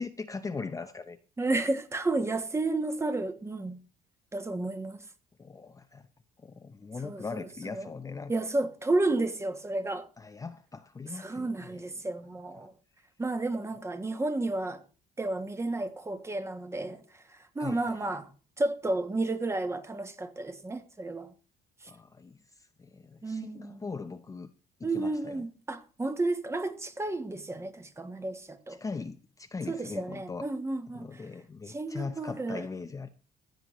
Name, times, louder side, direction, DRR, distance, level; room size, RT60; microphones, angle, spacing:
voice 1, 0.0-1.2 5.4-6.1 6.4-8.3 10.2-11.9 12.6-12.7 17.6-18.2 21.9-24.5 24.8-25.4 28.7-30.5 31.0-33.1, left 4 dB, 20° left, 0.6 m, -40 dB
voice 2, 1.4-3.8 4.3-5.0 7.0-7.9 8.3-10.1 11.1-12.7 13.2-14.8 15.2-18.3 18.6-21.3 21.8-21.9 23.2-23.9 24.8-28.8 29.7-31.3 31.7-32.7, right 2 dB, 15° right, 1.2 m, -32 dB
15.5 x 9.2 x 3.1 m
cardioid pair, 110°, 17 cm